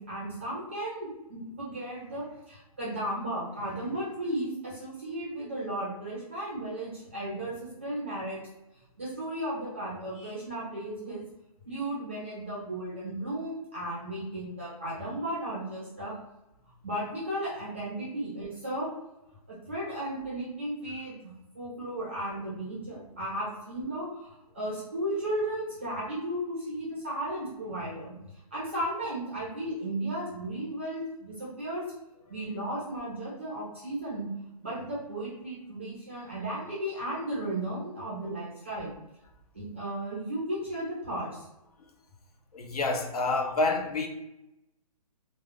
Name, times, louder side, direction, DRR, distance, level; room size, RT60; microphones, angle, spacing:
voice 1, 0.0-8.4 9.0-11.2 11.7-16.1 16.8-18.9 19.5-28.1 28.5-31.9 32.3-34.3 34.6-38.9 39.5-41.5, right 1 dB, 20° right, 0.4 m, -35 dB
voice 2, 42.5-44.1, left 3 dB, 70° left, 0.6 m, -28 dB
2.2 x 2.1 x 3.4 m
hypercardioid pair, 180°, 20 cm